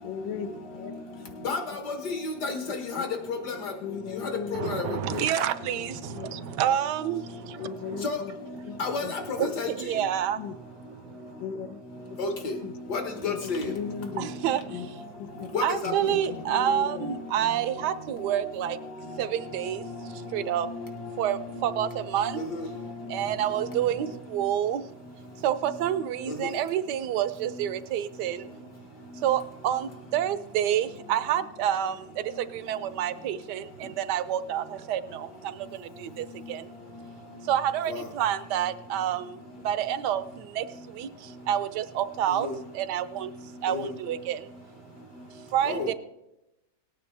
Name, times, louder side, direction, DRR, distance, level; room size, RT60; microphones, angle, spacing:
voice 1, 0.0-0.9 3.0-3.1 3.8-4.7 5.1-5.2 6.1-6.3 7.6-8.3 8.6-9.1 10.4-10.5 11.4-11.8 12.0-12.2 12.6-12.7 13.3-14.3 14.7-14.9 15.2-15.5 15.9-16.2 16.5-17.1, left 7 dB, 80° left, 1.4 m, -37 dB
voice 2, 1.4-3.7 4.2-5.0 8.0-8.2 8.8-9.7 12.2-12.5 12.9-13.7 15.5-15.9 16.6-17.6 19.8-20.1 20.6-21.0 21.5-21.7 22.3-23.2 26.3-26.4 37.9-38.0 42.4-42.5 43.7-43.8 45.7-45.9, left 4 dB, 60° left, 2.0 m, -32 dB
voice 3, 4.5-8.0 8.7-8.8 9.4-11.4 14.2-20.7 21.2-22.5 23.1-45.9, right 10 dB, 70° right, 1.1 m, -29 dB
18.5 x 9.2 x 3.4 m
omnidirectional pair, 2.0 m